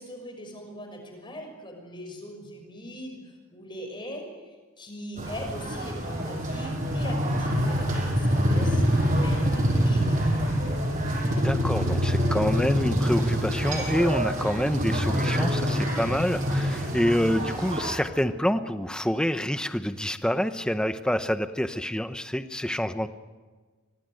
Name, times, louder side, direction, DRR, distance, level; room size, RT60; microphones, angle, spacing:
voice 1, 0.0-10.6, equal, 20° left, 3 dB, 6.0 m, -41 dB
sound 1, 5.2-17.9, equal, 35° right, 6.8 m, -26 dB
voice 2, 11.2-23.1, equal, 5° left, 9 dB, 0.8 m, -27 dB
25.5 x 18.5 x 9.2 m, 1.4 s
head